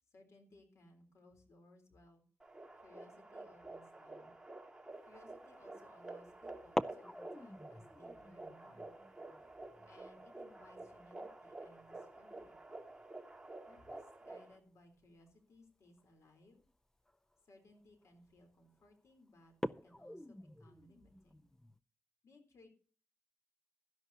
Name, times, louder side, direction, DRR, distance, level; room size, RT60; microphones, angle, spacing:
voice 1, 0.1-2.2 2.8-4.3 5.1-9.0 9.8-12.6 13.7-16.6 17.4-21.5 22.2-22.7, left 1 dB, 90° left, 5 dB, 3.6 m, -63 dB
sound 1, 2.4-14.6, right 2 dB, 15° right, 2.1 m, -51 dB
sound 2, 5.1-5.4 6.6-13.0 13.3-13.4 13.8-14.1 15.2-15.3 16.0-16.1 16.6-16.7 17.1-17.4 18.0-18.4 18.8-18.9 19.5-21.8, left 1 dB, 10° left, 0.4 m, -45 dB
16.5 x 12.5 x 2.8 m, 0.42 s
wide cardioid pair, 130°, 5 cm